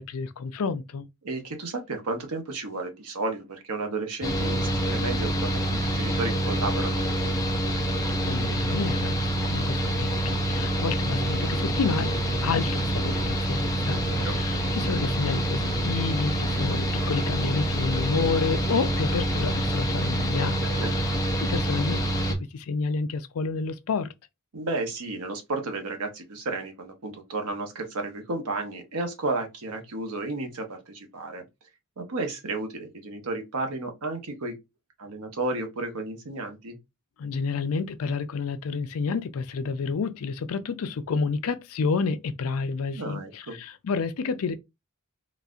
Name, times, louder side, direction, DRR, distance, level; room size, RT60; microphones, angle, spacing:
voice 1, 0.0-1.1 8.2-12.2 12.4-20.6 21.4-22.2 22.5-24.1 37.2-44.6, left 5 dB, 70° left, 0.4 m, -29 dB
voice 2, 1.2-7.3 14.0-14.3 20.5-20.9 24.5-31.4 32.0-34.5 35.0-36.8 42.9-43.6, right 2 dB, 90° right, 0.9 m, -33 dB
Mechanical fan, 4.2-22.3, right 1 dB, 15° left, 0.6 m, -26 dB
4.0 x 2.4 x 2.4 m
head